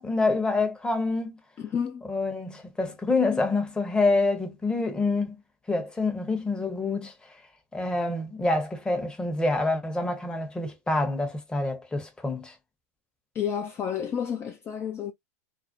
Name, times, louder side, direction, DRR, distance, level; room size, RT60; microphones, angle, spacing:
voice 1, 0.0-1.4 2.1-5.4 5.7-7.1 7.7-12.5, left 3 dB, 10° left, 0.8 m, -27 dB
voice 2, 1.6-2.1 13.3-15.1, left 8 dB, 30° left, 0.4 m, -30 dB
2.5 x 2.0 x 2.4 m
hypercardioid pair, 105°, 8 cm